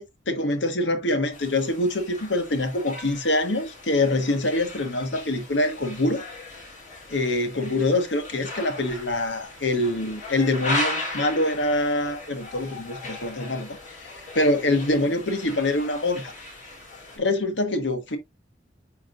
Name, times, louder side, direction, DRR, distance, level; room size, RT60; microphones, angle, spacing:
voice 1, 0.0-6.2 7.1-13.7 14.0-16.3 17.2-18.2, left 2 dB, 85° left, 1.4 m, -25 dB
sound 1, 1.3-17.2, left 2 dB, 45° left, 3.5 m, -37 dB
8.3 x 4.8 x 2.5 m
head